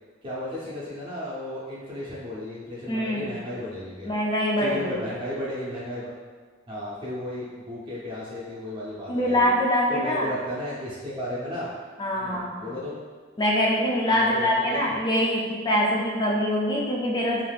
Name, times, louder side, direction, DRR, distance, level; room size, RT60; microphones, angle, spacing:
voice 1, 0.2-4.1 4.6-6.1 6.7-9.5 9.9-11.7 12.2-13.0 14.1-14.8, left 1 dB, 25° right, -8 dB, 0.5 m, -34 dB
voice 2, 2.9-3.4 4.1-5.0 9.1-10.3 12.0-12.7 13.4-17.4, left 1 dB, 20° left, -3 dB, 0.3 m, -24 dB
3.3 x 2.4 x 2.3 m, 1.5 s
head